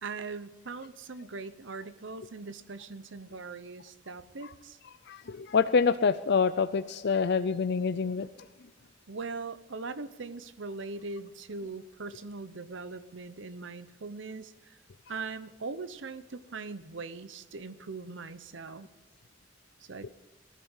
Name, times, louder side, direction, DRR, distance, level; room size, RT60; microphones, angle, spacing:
voice 1, 0.0-4.8 9.1-14.8 15.1-18.9 19.8-20.1, right 4 dB, 70° right, 14 dB, 0.8 m, -41 dB
voice 2, 5.1-8.3 20.0-20.1, left 5 dB, 60° left, 12 dB, 0.5 m, -26 dB
20.0 x 13.0 x 5.6 m, 1.2 s
head